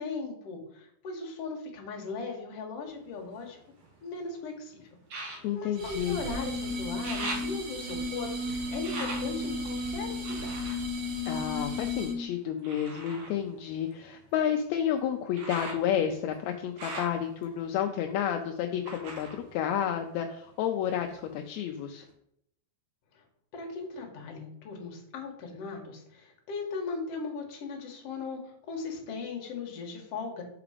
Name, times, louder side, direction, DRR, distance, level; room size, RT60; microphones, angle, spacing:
voice 1, 0.0-3.6 4.0-4.8 5.2-10.5 10.9-11.0 23.5-30.4, left 4 dB, 60° left, 2 dB, 2.0 m, -38 dB
sound 1, 2.9-4.2 5.0-6.6 6.8-12.0 12.6-20.5 20.8-21.6 22.1-22.2, right 2 dB, 60° right, 1.9 m, -43 dB
voice 2, 5.4-6.2 11.3-22.0, left 9 dB, 80° left, 4 dB, 1.7 m, -31 dB
sound 2, 5.8-12.3, left 2 dB, 75° right, 0.9 m, -34 dB
5.8 x 4.9 x 4.9 m, 0.74 s
omnidirectional pair, 3.5 m